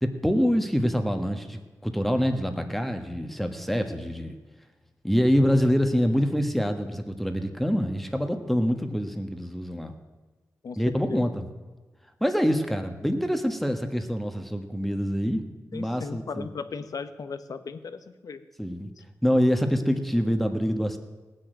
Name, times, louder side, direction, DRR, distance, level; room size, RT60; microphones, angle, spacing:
voice 1, 0.0-4.4 5.0-9.9 10.8-11.5 12.2-15.4 15.7-16.5 18.6-18.9 19.2-21.0, equal, 5° left, 6 dB, 1.3 m, -25 dB
voice 2, 15.7-18.4 19.0-19.1, left 5 dB, 70° left, 10 dB, 1.0 m, -37 dB
18.0 x 6.5 x 9.0 m, 1.3 s
wide cardioid pair, 100°, 6 cm